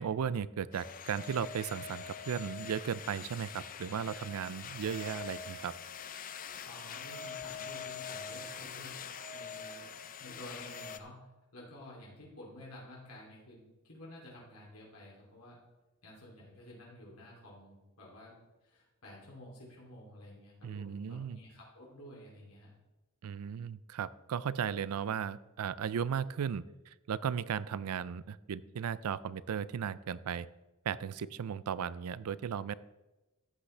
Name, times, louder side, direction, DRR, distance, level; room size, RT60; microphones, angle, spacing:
voice 1, 0.0-5.7 20.6-21.4 23.2-30.5 30.9-32.7, right 7 dB, 80° right, 18 dB, 0.4 m, -36 dB
sound 1, 0.7-11.0, left 6 dB, 40° left, 0.5 m, -44 dB
voice 2, 6.6-9.0 9.3-11.3 11.5-15.6 16.0-22.7, left 1 dB, 75° left, -4 dB, 2.8 m, -51 dB
14.0 x 8.2 x 3.3 m, 1.1 s
head